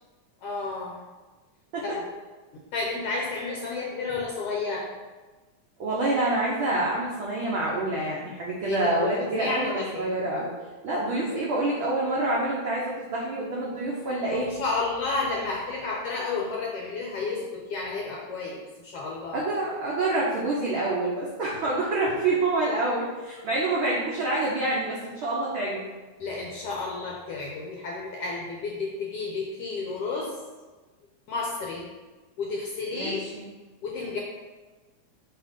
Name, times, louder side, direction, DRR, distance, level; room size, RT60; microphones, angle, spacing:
voice 1, 0.4-1.1 1.8-2.0 2.7-4.9 8.6-10.1 14.3-19.4 26.2-30.3 31.3-31.9 32.4-33.2 33.8-34.2, left 3 dB, 75° left, -2 dB, 1.4 m, -31 dB
voice 2, 5.8-10.5 10.8-14.5 19.3-25.8 33.0-33.5, right 2 dB, 85° right, -5 dB, 1.1 m, -27 dB
7.7 x 3.0 x 5.1 m, 1.3 s
omnidirectional pair, 3.6 m